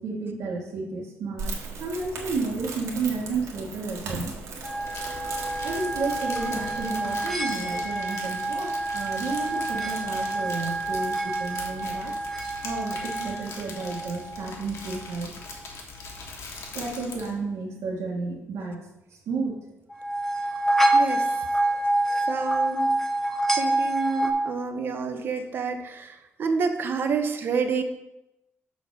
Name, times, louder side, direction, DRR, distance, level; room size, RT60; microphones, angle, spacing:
voice 1, 0.0-4.4 5.6-12.1 12.6-15.3 16.7-19.6, right 3 dB, 70° right, -3 dB, 1.4 m, -32 dB
Crackle, 1.4-6.8, right 3 dB, 90° right, 1.7 m, -37 dB
sound 1, 4.6-14.5 19.9-24.3, right 2 dB, 5° left, 0.7 m, -27 dB
Crumpling crinkling, 4.8-17.4, left 3 dB, 65° left, 1.5 m, -41 dB
voice 2, 20.9-21.4 22.3-23.0 23.5-27.8, right 5 dB, 45° right, 7 dB, 0.8 m, -28 dB
6.6 x 4.3 x 6.1 m, 0.91 s
cardioid pair, 170°, 5 cm